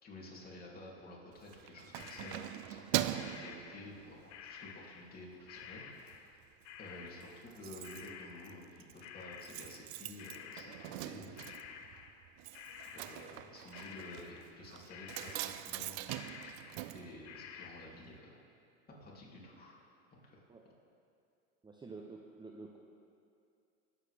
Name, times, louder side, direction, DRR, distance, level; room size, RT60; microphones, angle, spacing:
voice 1, 0.0-5.8 6.8-11.5 12.9-16.0 16.9-18.4 19.0-19.8 20.1-20.4, left 1 dB, 25° left, -4 dB, 3.0 m, -51 dB
Keys jangling, 1.3-4.4 4.9-5.1 5.5-6.2 6.4-6.5 6.8-6.9 7.1-17.9 18.1-18.2, right 15 dB, 55° right, 0.5 m, -42 dB
sound 1, 1.9-4.0 4.3-11.1 11.4-14.6 14.9-15.8 16.1-17.9, left 7 dB, 80° left, 1.0 m, -51 dB
voice 2, 21.6-22.8, right 3 dB, 15° right, 1 dB, 0.8 m, -49 dB
19.5 x 8.1 x 3.4 m, 2.5 s
hypercardioid pair, 100°, 35 cm